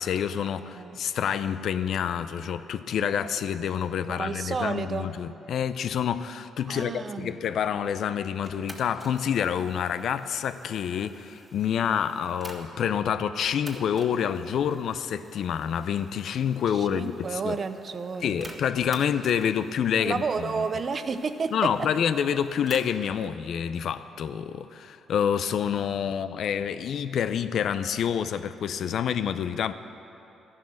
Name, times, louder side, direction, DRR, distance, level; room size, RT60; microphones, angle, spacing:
voice 1, 0.0-17.6 18.2-20.2 20.6-20.7 21.5-29.7, left 8 dB, 70° left, 12 dB, 0.5 m, -28 dB
voice 2, 4.1-5.1 6.7-7.4 16.7-18.5 20.0-21.9, right 5 dB, 45° right, 11 dB, 0.6 m, -31 dB
sound 1, 8.4-12.9 13.4-23.2, right 1 dB, 15° right, 1.5 m, -50 dB
13.0 x 11.0 x 6.3 m, 2.9 s
cardioid pair, 90°, 0 cm